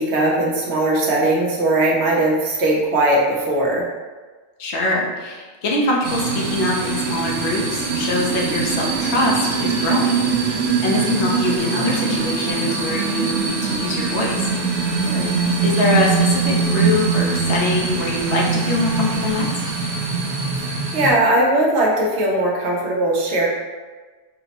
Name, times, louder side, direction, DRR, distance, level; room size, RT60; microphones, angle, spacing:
voice 1, 0.0-3.9 15.0-15.4 20.6-23.5, right 1 dB, 80° right, -2 dB, 1.0 m, -19 dB
voice 2, 4.6-14.5 15.6-19.5, left 2 dB, 75° left, -2 dB, 0.9 m, -23 dB
sound 1, 6.0-21.1, right 4 dB, 55° right, 0.7 m, -22 dB
4.1 x 2.0 x 2.8 m, 1.3 s
omnidirectional pair, 1.1 m